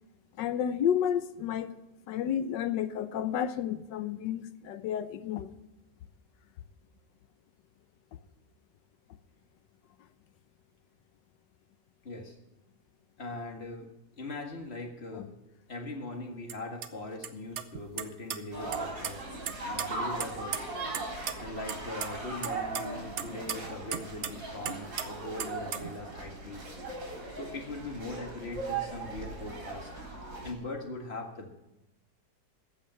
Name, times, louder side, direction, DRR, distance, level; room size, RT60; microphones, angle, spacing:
voice 1, 0.4-1.7 2.1-5.5 15.1-15.3, left 9 dB, 75° left, 12 dB, 1.4 m, -31 dB
voice 2, 12.0-12.4 13.2-13.9 14.2-15.3 15.7-19.2 19.6-20.7 21.4-26.6 27.3-29.9 30.4-31.5, left 2 dB, 35° left, 2 dB, 2.0 m, -40 dB
sound 1, 16.5-16.6 16.8-16.9 17.2-17.3 17.6-18.4 18.7-19.1 19.5-21.0 21.3-21.4 21.7-22.1 22.4-24.4 24.6-25.1 25.4-25.9, right 8 dB, 55° right, 0.8 m, -35 dB
sound 2, 18.5-30.5, right 3 dB, 75° right, 4.4 m, -39 dB
15.0 x 5.7 x 10.0 m, 0.92 s
omnidirectional pair, 1.9 m